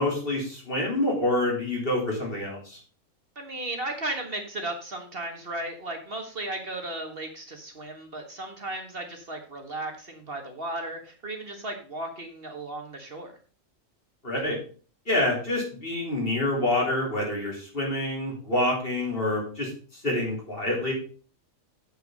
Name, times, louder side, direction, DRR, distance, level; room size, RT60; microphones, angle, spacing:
voice 1, 0.0-2.8 14.2-14.6 15.1-20.9, left 1 dB, 45° left, -2 dB, 4.0 m, -27 dB
voice 2, 3.3-13.3, right 2 dB, 45° right, 4 dB, 1.7 m, -35 dB
8.1 x 8.0 x 5.3 m, 0.39 s
omnidirectional pair, 1.4 m